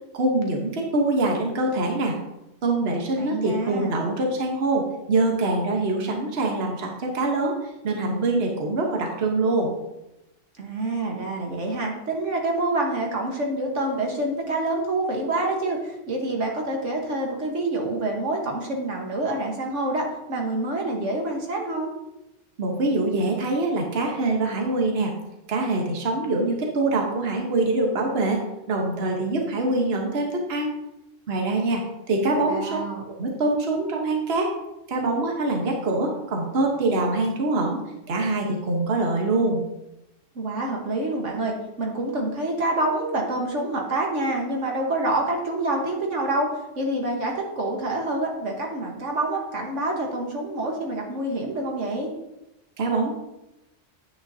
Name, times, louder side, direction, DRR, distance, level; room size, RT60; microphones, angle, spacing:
voice 1, 0.1-2.1 2.6-9.7 22.6-25.1 25.5-28.4 28.7-30.7 31.3-31.8 32.1-32.8 33.2-34.5 34.9-37.8 38.1-39.6 52.8-53.1, right 2 dB, 55° right, 0 dB, 1.4 m, -24 dB
voice 2, 3.2-3.9 10.6-21.9 32.3-33.0 40.4-52.1, right 2 dB, 75° right, 1 dB, 1.7 m, -27 dB
9.6 x 8.9 x 2.8 m, 0.93 s
omnidirectional pair, 1.3 m